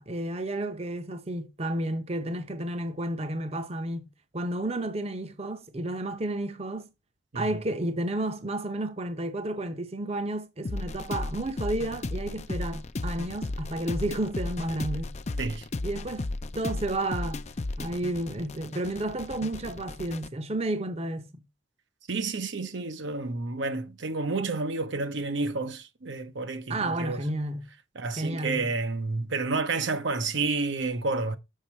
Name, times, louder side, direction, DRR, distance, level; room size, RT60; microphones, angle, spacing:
voice 1, 0.0-6.9 7.3-15.1 15.8-17.4 17.8-21.5 26.7-27.7 28.2-28.7, right 1 dB, 30° right, 0.8 m, -32 dB
sound 1, 10.6-20.3, left 2 dB, 35° left, 0.5 m, -35 dB
voice 2, 22.1-27.2 28.0-31.4, right 3 dB, 65° right, 0.8 m, -30 dB
7.1 x 6.6 x 4.3 m
head